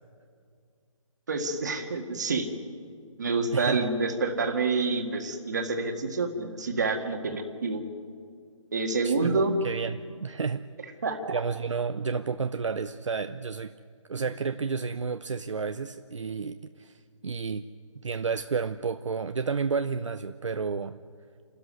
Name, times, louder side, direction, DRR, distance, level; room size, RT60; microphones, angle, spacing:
voice 1, 1.3-2.5 3.2-7.8 8.7-9.5 11.0-11.4 14.2-14.3, right 3 dB, 30° right, 4 dB, 1.8 m, -28 dB
voice 2, 3.5-3.9 9.0-10.6 11.3-13.7 14.1-17.6 18.0-21.0, right 5 dB, 60° right, 9 dB, 0.7 m, -31 dB
28.5 x 13.0 x 9.6 m, 2.2 s
hypercardioid pair, 180°, 17 cm